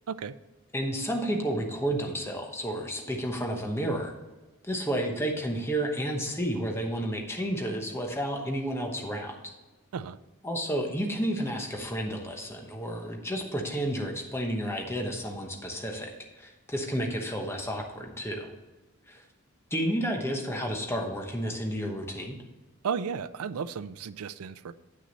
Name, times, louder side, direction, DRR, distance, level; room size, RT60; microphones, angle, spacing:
voice 1, 0.7-4.1 4.6-9.3 10.4-18.5 19.1-19.2 19.7-22.4, right 1 dB, 10° left, 2 dB, 1.0 m, -31 dB
voice 2, 22.8-24.7, right 6 dB, 80° right, 15 dB, 0.4 m, -34 dB
9.5 x 6.3 x 4.1 m, 1.2 s
head